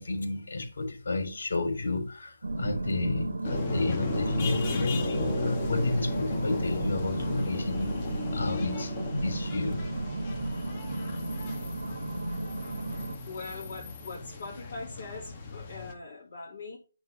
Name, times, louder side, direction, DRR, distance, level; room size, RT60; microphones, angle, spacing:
voice 1, 0.0-8.0 8.3-9.8, left 3 dB, 60° left, 6 dB, 3.3 m, -31 dB
sound 1, 2.4-13.2, right 2 dB, 75° right, 1.7 m, -34 dB
sound 2, 3.4-15.9, left 4 dB, 25° left, 1.9 m, -36 dB
voice 2, 13.2-16.8, left 3 dB, 40° left, -6 dB, 3.4 m, -41 dB
9.4 x 4.1 x 5.4 m, 0.34 s
figure-of-eight pair, 160°, 0 cm